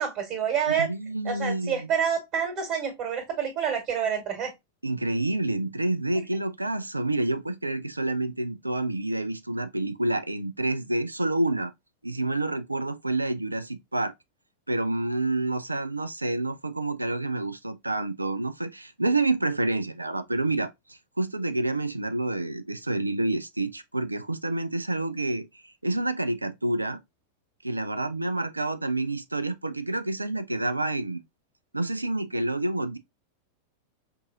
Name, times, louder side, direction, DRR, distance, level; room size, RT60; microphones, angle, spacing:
voice 1, 0.0-0.9 1.2-4.5, right 7 dB, 40° right, 1.6 m, -28 dB
voice 2, 0.7-1.9 4.8-11.7 12.0-14.1 14.7-27.0 27.6-31.2 31.7-33.0, right 2 dB, 85° right, 0.3 m, -28 dB
5.3 x 2.4 x 2.4 m
figure-of-eight pair, 90°, 0 cm